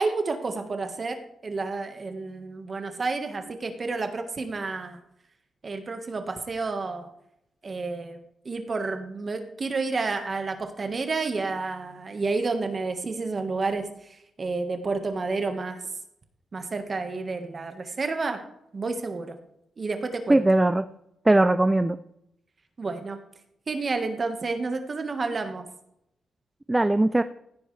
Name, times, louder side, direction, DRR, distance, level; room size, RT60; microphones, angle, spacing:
voice 1, 0.0-5.0 5.6-7.1 7.6-8.2 8.4-15.8 16.5-18.4 18.7-19.4 19.8-20.4 22.8-23.2 23.7-25.6, right 3 dB, 30° right, 6 dB, 1.5 m, -30 dB
voice 2, 20.3-20.8 21.3-22.0 26.7-27.2, right 2 dB, 10° right, 11 dB, 0.4 m, -20 dB
16.0 x 10.0 x 3.3 m, 0.79 s
wide cardioid pair, 155°, 0 cm